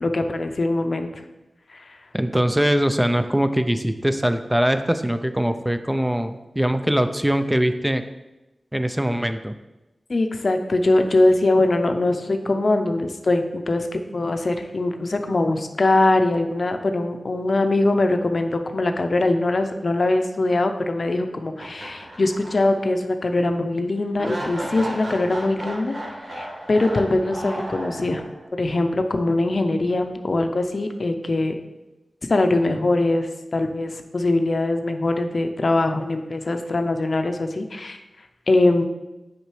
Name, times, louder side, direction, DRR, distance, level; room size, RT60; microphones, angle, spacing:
voice 1, 0.0-1.1 1.7-2.0 10.1-26.0 26.3-28.2 28.5-31.5 32.3-38.0 38.5-38.8, left 2 dB, 60° left, 6 dB, 0.5 m, -22 dB
voice 2, 2.1-8.0 8.7-9.5, equal, 10° right, 9 dB, 0.4 m, -22 dB
sound 1, 21.5-22.9 23.2-23.3 24.2-28.5, right 1 dB, 70° right, 1.5 m, -34 dB
6.4 x 5.1 x 3.2 m, 1.0 s
cardioid pair, 40°, 0 cm